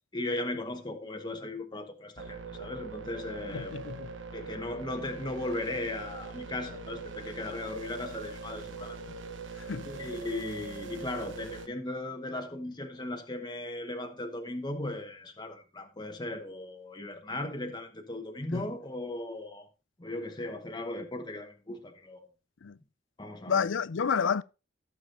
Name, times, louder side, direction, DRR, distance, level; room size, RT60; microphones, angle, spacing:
voice 1, 0.1-3.7 4.3-9.1 9.8-19.7 20.0-22.3 23.2-23.7, left 2 dB, 25° left, 1.2 m, -37 dB
sound 1, 2.2-11.7, right 3 dB, 75° right, 1.0 m, -42 dB
voice 2, 3.5-4.1 9.6-9.9 18.5-18.7 22.6-22.8 23.5-24.4, left 6 dB, 70° left, 0.5 m, -30 dB
16.0 x 7.1 x 2.6 m
head